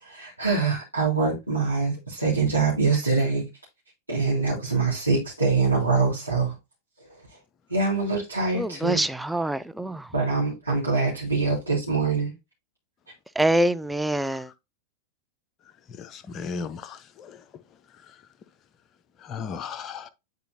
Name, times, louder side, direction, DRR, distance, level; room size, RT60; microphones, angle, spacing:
voice 1, 0.0-3.4 4.1-6.5 7.7-9.0 10.1-12.3, right 4 dB, 85° right, 2.4 m, -24 dB
voice 2, 8.5-10.1 13.4-14.5, right 1 dB, 5° right, 0.4 m, -25 dB
voice 3, 16.0-17.4 18.1-18.2 19.2-20.1, left 5 dB, 30° left, 0.8 m, -36 dB
10.0 x 3.9 x 2.7 m
figure-of-eight pair, 90°, 0 cm